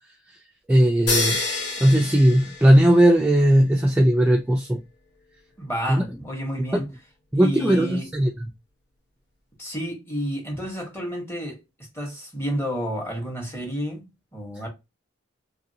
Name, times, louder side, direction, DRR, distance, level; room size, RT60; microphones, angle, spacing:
voice 1, 0.7-1.4 1.8-4.8 5.9-6.0 6.7-6.8 7.3-8.3, right 1 dB, 5° right, 0.3 m, -18 dB
sound 1, 1.1-3.2, left 3 dB, 65° left, 1.2 m, -27 dB
voice 2, 5.6-6.9 7.4-8.1 9.6-11.6 11.9-14.0 14.3-14.7, equal, 15° left, 1.2 m, -30 dB
2.9 x 2.6 x 2.7 m
head